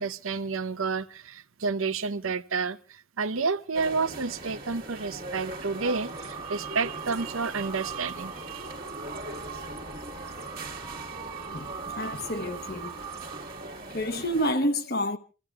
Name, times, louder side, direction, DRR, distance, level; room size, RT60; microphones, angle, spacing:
voice 1, 0.0-8.7 9.5-9.6, right 4 dB, 80° right, 0.8 m, -30 dB
sound 1, 3.7-14.5, right 2 dB, 45° right, 1.7 m, -40 dB
sound 2, 5.7-13.8, right 6 dB, 30° right, 1.6 m, -41 dB
voice 2, 11.5-13.0 13.6-15.2, equal, 50° left, 1.2 m, -29 dB
29.0 x 15.0 x 2.4 m
head